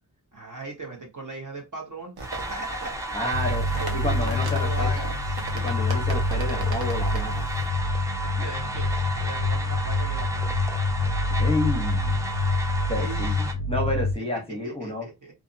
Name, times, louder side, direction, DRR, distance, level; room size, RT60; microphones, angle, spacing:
voice 1, 0.3-3.3 3.7-5.3 8.2-10.6 13.0-13.5 14.6-15.3, right 2 dB, 50° right, 1.2 m, -39 dB
sound 1, 2.2-13.5, right 2 dB, 10° right, 0.4 m, -34 dB
sound 2, 2.2-7.7, right 2 dB, 65° right, 0.9 m, -38 dB
voice 2, 3.1-3.7 3.9-4.9 5.5-7.5 11.4-12.2 12.9-13.3 13.7-15.1, left 2 dB, 15° left, 0.9 m, -30 dB
sound 3, 3.3-14.1, left 2 dB, 50° left, 0.5 m, -26 dB
2.6 x 2.6 x 2.5 m
wide cardioid pair, 105°, 40 cm